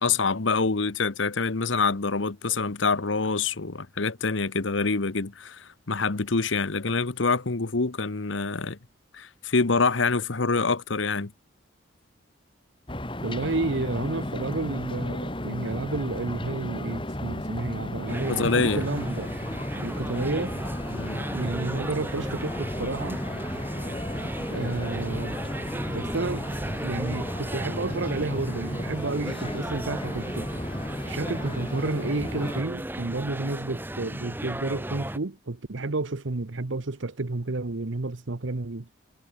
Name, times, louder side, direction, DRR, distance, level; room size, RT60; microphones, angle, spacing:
voice 1, 0.0-8.8 9.1-11.3 18.3-18.8 20.9-21.2 24.6-24.8, left 4 dB, 75° left, 1.1 m, -26 dB
sound 1, 12.9-32.6, left 1 dB, 25° left, 3.9 m, -34 dB
voice 2, 13.2-19.3 19.8-20.5 21.3-23.2 24.5-25.4 25.9-26.4 26.8-30.5 31.1-38.9, right 2 dB, 75° right, 1.0 m, -31 dB
sound 2, 18.1-35.2, right 1 dB, 10° right, 1.3 m, -35 dB
head